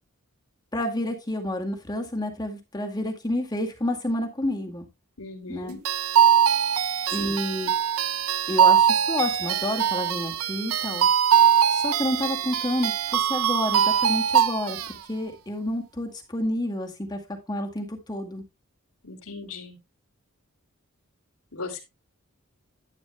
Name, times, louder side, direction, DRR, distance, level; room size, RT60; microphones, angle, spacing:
voice 1, 0.7-4.9 5.5-5.8 7.1-7.7 8.5-11.1 11.7-17.2 17.5-18.4, left 1 dB, 20° left, 3 dB, 2.1 m, -29 dB
voice 2, 5.2-5.8 7.1-7.3 19.0-19.8 21.5-21.8, left 3 dB, 85° left, -1 dB, 2.9 m, -38 dB
sound 1, 5.9-14.9, right 9 dB, 80° right, 0.6 m, -22 dB
11.5 x 11.0 x 2.3 m, 0.25 s
head